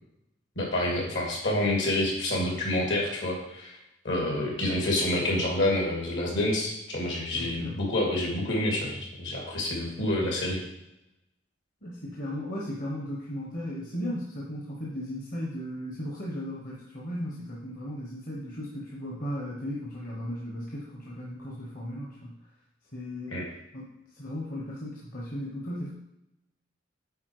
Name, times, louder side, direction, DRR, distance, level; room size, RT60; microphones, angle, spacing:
voice 1, 0.6-3.8 4.0-10.6 23.3-23.5, left 1 dB, 70° left, -2 dB, 2.5 m, -28 dB
voice 2, 7.3-7.8 11.8-22.3 22.9-23.4 23.7-25.9, equal, 45° left, -3 dB, 1.2 m, -36 dB
8.6 x 4.4 x 4.9 m, 0.89 s
head